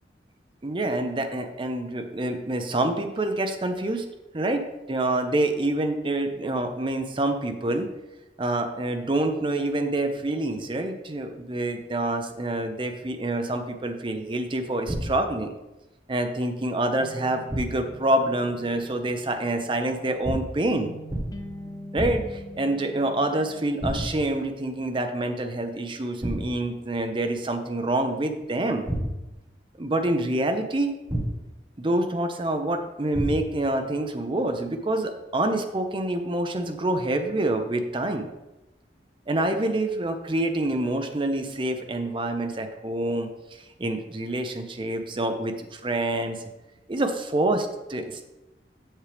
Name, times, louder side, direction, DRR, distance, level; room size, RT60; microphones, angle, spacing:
voice 1, 0.6-4.1 4.3-7.9 8.4-15.5 16.1-20.9 21.9-28.9 29.8-30.9 31.8-38.3 39.3-46.4 46.9-48.2, right 1 dB, 30° right, 6 dB, 0.6 m, -27 dB
sound 1, 14.9-15.4 17.5-18.0 20.2-20.7 21.1-21.5 22.0-22.5 23.8-24.4 26.2-26.7 28.9-29.5 31.1-31.7 33.1-33.7, equal, 15° right, 1.1 m, -31 dB
sound 2, 17.0-24.4, equal, 20° left, 0.4 m, -43 dB
7.3 x 6.3 x 3.4 m, 0.99 s
head